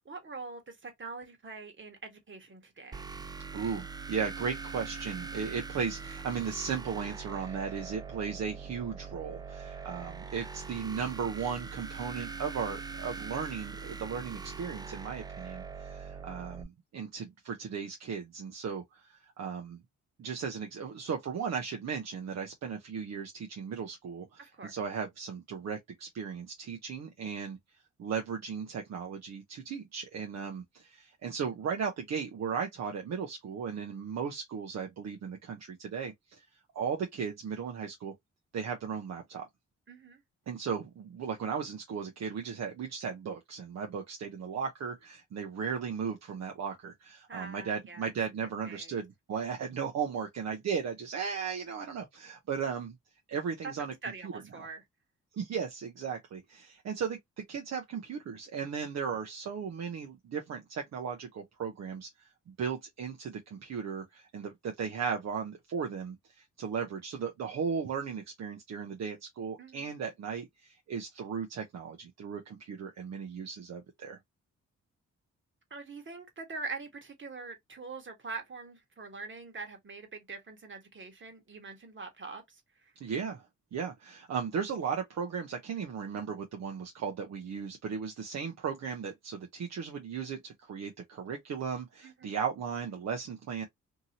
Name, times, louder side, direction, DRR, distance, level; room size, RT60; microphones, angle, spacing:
voice 1, 0.0-3.2 24.4-24.7 39.9-40.2 47.3-48.1 48.4-49.0 53.6-53.7 54.0-54.8 69.6-69.9 75.7-82.9 92.0-92.3, right 4 dB, 40° right, 1.3 m, -44 dB
sound 1, 2.9-16.6, right 5 dB, 15° right, 0.4 m, -42 dB
voice 2, 3.5-19.8 20.2-27.6 28.0-36.4 36.7-38.1 38.5-39.5 40.5-52.9 53.3-53.9 54.2-54.7 55.3-74.2 83.0-83.5 83.7-93.6, right 6 dB, 60° right, 0.7 m, -36 dB
2.8 x 2.6 x 2.7 m
supercardioid pair, 55°, 31 cm